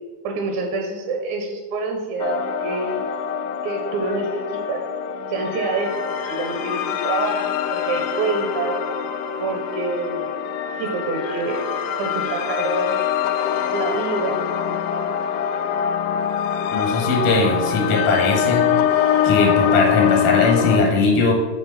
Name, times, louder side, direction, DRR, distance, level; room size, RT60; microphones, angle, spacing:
voice 1, 0.2-3.1 3.6-4.9 5.3-8.8 9.4-10.4 10.8-11.7 12.0-13.1 13.7-14.4 14.7-14.8, right 3 dB, 80° right, 3 dB, 1.7 m, -27 dB
sound 1, 2.2-20.8, left 9 dB, 85° left, 2.3 m, -24 dB
voice 2, 16.7-18.6 19.2-21.3, left 3 dB, 70° left, -1 dB, 2.6 m, -19 dB
7.2 x 3.0 x 5.5 m, 1.5 s
omnidirectional pair, 3.8 m